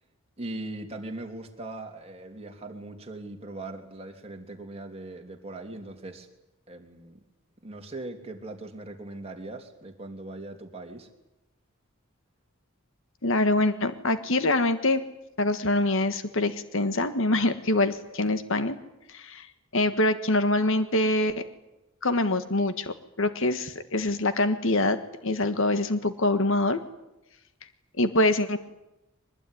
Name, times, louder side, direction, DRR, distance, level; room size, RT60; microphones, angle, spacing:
voice 1, 0.4-6.3 6.7-7.2 7.6-11.1, right 2 dB, 30° right, 3 dB, 3.0 m, -40 dB
voice 2, 13.2-15.0 15.4-18.8 19.1-19.5 19.7-21.4 22.0-25.0 25.2-26.8 28.0-28.6, left 2 dB, 60° left, 10 dB, 1.5 m, -24 dB
24.0 x 20.0 x 10.0 m, 0.94 s
head